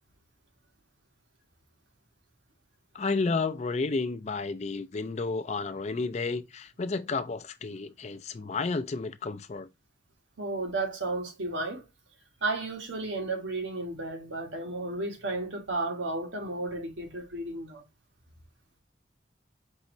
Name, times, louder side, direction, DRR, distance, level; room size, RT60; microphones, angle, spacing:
voice 1, 2.9-9.7, left 3 dB, 35° left, 0.4 m, -31 dB
voice 2, 10.4-11.9 12.4-17.8, right 2 dB, 85° right, 1.5 m, -33 dB
5.4 x 3.0 x 2.6 m
head